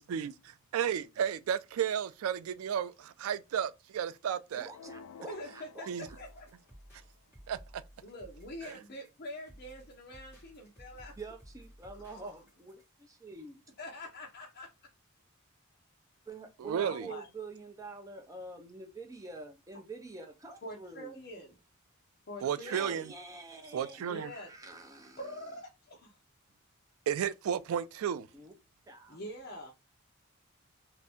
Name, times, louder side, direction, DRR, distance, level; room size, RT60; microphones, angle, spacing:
voice 1, 0.0-4.7 5.9-6.1 7.5-7.8 16.6-17.1 22.4-23.1 23.7-24.3 27.1-28.3, right 8 dB, 85° right, 0.3 m, -33 dB
voice 2, 4.6-6.1 11.2-13.5 16.3-21.2 22.4-25.2 28.3-28.5 28.9-29.2, right 3 dB, 15° right, 0.6 m, -47 dB
sound 1, 4.7-6.8, left 5 dB, 80° left, 0.3 m, -52 dB
voice 3, 5.3-6.5 8.0-11.1 12.1-12.2 13.8-14.7 16.8-17.3 20.6-21.6 22.3-23.0 24.0-24.5 25.2-26.2 29.1-29.7, left 1 dB, 50° left, 0.7 m, -45 dB
sound 2, 6.0-12.9, equal, 10° left, 1.5 m, -55 dB
2.7 x 2.5 x 3.4 m
head